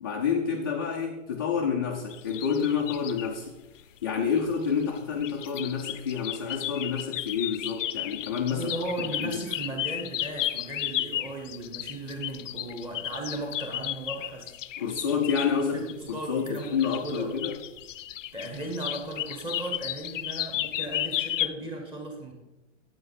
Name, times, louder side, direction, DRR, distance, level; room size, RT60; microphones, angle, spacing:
voice 1, 0.0-3.6 4.0-8.7 9.2-9.4 14.8-17.6, left 6 dB, 20° left, -3 dB, 0.3 m, -28 dB
sound 1, 2.1-3.3 4.6-21.5, left 13 dB, 70° left, 0.6 m, -34 dB
voice 2, 8.5-14.5 15.5-17.5 18.3-22.3, right 2 dB, 15° right, 0 dB, 1.6 m, -36 dB
9.8 x 8.5 x 4.1 m, 0.97 s
hypercardioid pair, 165°, 40 cm